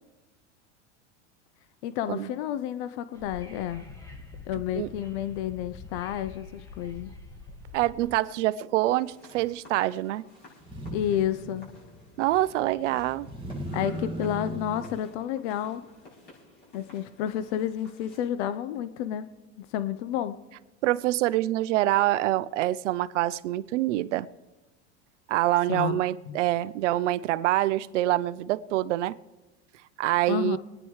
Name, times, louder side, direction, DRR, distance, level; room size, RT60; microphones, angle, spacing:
voice 1, 1.8-3.8 4.5-7.1 10.9-11.7 13.7-15.8 16.7-19.3 19.6-20.4 25.7-26.4 30.3-30.6, left 10 dB, 70° left, 0.7 m, -30 dB
Wind / Subway metro underground, 3.1-8.1, left 3 dB, 10° left, 1.8 m, -45 dB
voice 2, 7.7-10.2 12.2-13.3 20.8-24.3 25.3-29.2 30.0-30.6, right 15 dB, 85° right, 0.6 m, -25 dB
chuze dvou dam po peronu vlakoveho nadrazi, 8.8-18.3, left 2 dB, 30° left, 6.2 m, -54 dB
Motor vehicle (road), 9.3-9.4 10.6-14.9, right 1 dB, 15° right, 2.0 m, -38 dB
28.0 x 9.9 x 3.2 m
supercardioid pair, 115°, 35 cm